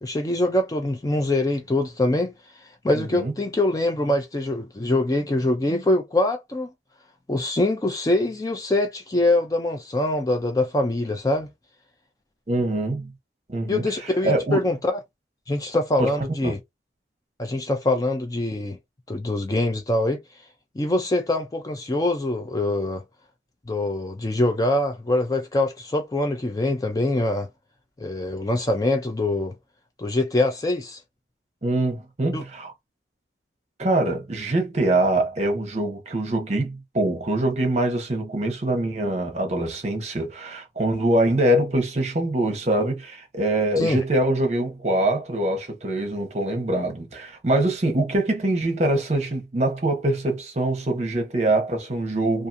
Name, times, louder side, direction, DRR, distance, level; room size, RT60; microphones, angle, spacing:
voice 1, 0.0-2.3 2.8-6.7 7.3-11.5 13.7-14.9 15.5-16.6 17.4-18.8 19.1-20.2 20.8-23.0 23.7-27.5 28.0-29.6 30.0-31.0 32.3-32.4 43.8-44.0, left 2 dB, 20° left, 0.4 m, -24 dB
voice 2, 2.9-3.3 12.5-13.1 13.5-14.7 16.0-16.1 16.4-16.5 31.6-32.7 33.8-52.5, right 1 dB, 40° right, 0.9 m, -24 dB
2.7 x 2.4 x 2.5 m
head